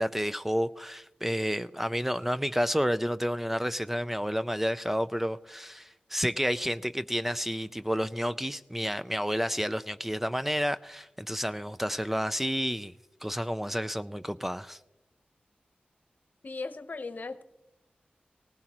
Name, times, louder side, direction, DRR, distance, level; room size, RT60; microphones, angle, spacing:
voice 1, 0.0-12.9 13.2-14.8, equal, 5° right, 0.4 m, -30 dB
voice 2, 16.4-17.4, left 3 dB, 60° left, 0.9 m, -37 dB
18.5 x 15.5 x 3.0 m
cardioid pair, 45°, 3 cm